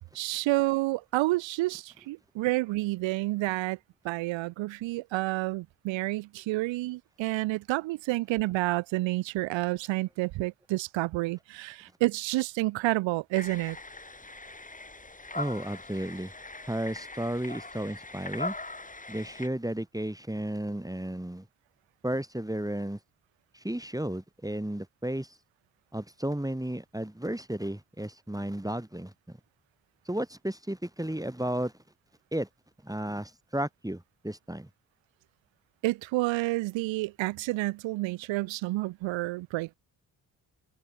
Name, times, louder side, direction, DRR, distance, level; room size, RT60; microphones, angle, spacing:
voice 1, 0.1-3.8 4.0-13.8 35.8-39.7, right 19 dB, 70° right, 0.9 m, -29 dB
sound 1, 13.3-19.5, left 2 dB, 15° left, 2.4 m, -41 dB
voice 2, 15.3-16.3 16.6-18.5 19.1-21.4 22.0-23.0 23.5-25.3 25.9-29.1 30.1-31.7 32.3-32.5 32.8-34.7, right 1 dB, 10° right, 4.2 m, -33 dB
hypercardioid pair, 40°, 46 cm